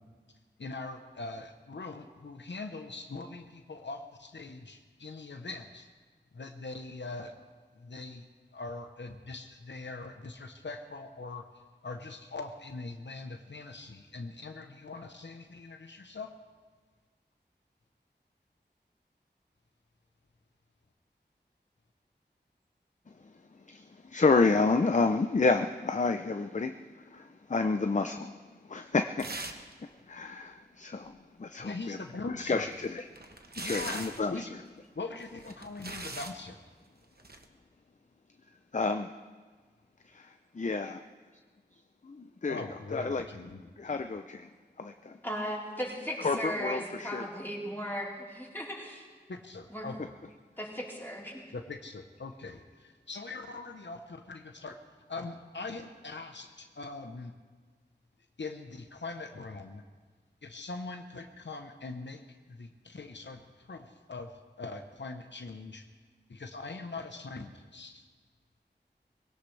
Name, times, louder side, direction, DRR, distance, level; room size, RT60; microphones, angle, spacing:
voice 1, 0.6-5.9 6.3-7.3 7.8-8.3 8.5-11.5 11.8-16.3 31.6-32.6 33.6-34.0 34.3-34.5 35.0-36.6 42.5-43.6 49.3-50.0 51.5-54.8 55.1-57.3 58.4-59.8 60.4-62.2 62.5-65.9 66.3-68.0, left 3 dB, 90° left, 5 dB, 0.9 m, -42 dB
voice 2, 23.2-29.3 29.8-32.0 32.3-33.0 33.6-34.6 38.7-39.1 40.6-41.0 41.7-42.6 42.9-43.3 43.6-44.5 44.8-45.2 46.2-47.3, left 3 dB, 45° left, 7 dB, 0.6 m, -30 dB
sound 1, 29.2-29.7 30.0-30.1 32.5-34.3 35.2-36.4 37.2-37.5, right 2 dB, 60° right, 1.1 m, -41 dB
voice 3, 45.2-49.1 49.7-49.9 50.6-51.4, equal, 10° left, -5 dB, 4.0 m, -37 dB
21.5 x 17.0 x 3.3 m, 1.5 s
wide cardioid pair, 50°, 18 cm